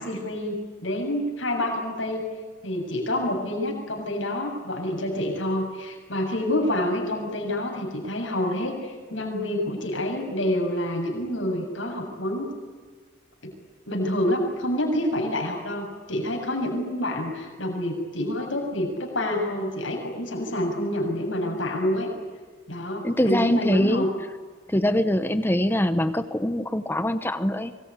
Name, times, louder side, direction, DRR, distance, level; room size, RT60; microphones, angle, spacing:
voice 1, 0.0-2.2 2.6-12.5 13.4-13.5 13.9-22.1 22.7-24.1, left 1 dB, 75° left, 1 dB, 7.2 m, -27 dB
voice 2, 23.0-24.1 24.7-27.7, left 1 dB, 10° left, 11 dB, 0.9 m, -23 dB
24.5 x 21.5 x 9.9 m, 1.5 s
head